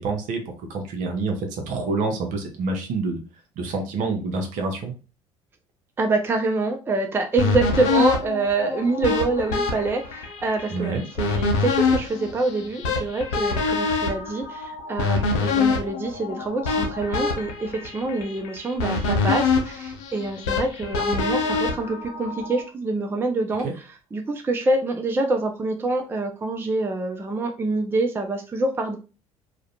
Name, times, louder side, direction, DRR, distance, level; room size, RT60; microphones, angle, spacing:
voice 1, 0.0-3.2 3.6-4.9 10.7-11.0 23.6-23.7, right 3 dB, 55° right, 4 dB, 0.7 m, -27 dB
voice 2, 6.0-23.8 24.1-29.0, right 2 dB, 15° right, 4 dB, 0.4 m, -26 dB
sound 1, 7.4-22.6, left 4 dB, 65° left, 0.6 m, -25 dB
2.4 x 2.1 x 2.7 m, 0.33 s
figure-of-eight pair, 55°, 16 cm